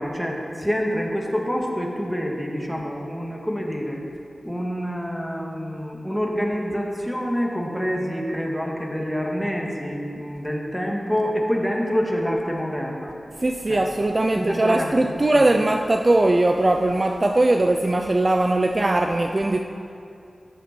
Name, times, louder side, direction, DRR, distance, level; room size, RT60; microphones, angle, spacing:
voice 1, 0.0-4.0 4.4-13.1 13.7-13.8 14.4-15.0 15.3-15.5, equal, ahead, -1 dB, 2.1 m, -27 dB
voice 2, 13.4-19.6, right 2 dB, 35° right, 4 dB, 0.5 m, -20 dB
13.5 x 11.0 x 4.5 m, 2.6 s
wide cardioid pair, 60°, 0 cm